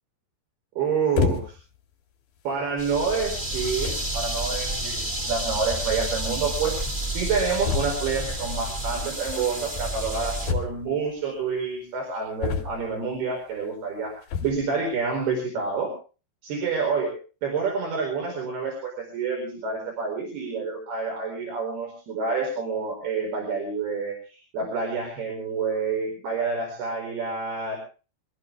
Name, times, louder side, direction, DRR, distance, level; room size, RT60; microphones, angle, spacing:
voice 1, 0.8-1.6 2.4-6.8 7.1-16.0 16.4-17.2 17.4-27.8, right 5 dB, 65° right, 1 dB, 6.6 m, -28 dB
sound 1, 1.2-1.8 2.5-2.7 3.5-3.6 3.8-4.2 5.4-5.5 5.7-5.8 6.0-6.1 7.6-8.2 10.5-11.1 12.4-13.1 14.2-14.7, left 6 dB, 55° left, 4.0 m, -28 dB
sound 2, 2.8-10.5, right 1 dB, 45° right, 0.6 m, -30 dB
26.0 x 14.0 x 3.5 m, 0.37 s
omnidirectional pair, 5.0 m